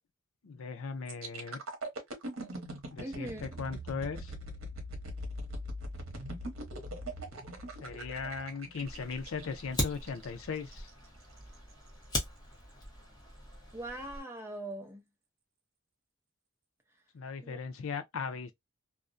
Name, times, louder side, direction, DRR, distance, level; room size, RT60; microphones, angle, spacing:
voice 1, 0.4-1.6 2.9-4.3 7.8-10.9 17.1-18.5, left 5 dB, 75° left, 0.5 m, -38 dB
sound 1, 1.1-10.9 11.4-11.6, right 1 dB, 75° right, 0.9 m, -42 dB
voice 2, 3.0-3.6 13.7-15.0 17.4-17.6, right 1 dB, 10° right, 0.7 m, -41 dB
Fire, 8.8-14.2, left 1 dB, 20° left, 0.8 m, -39 dB
2.4 x 2.1 x 2.5 m
head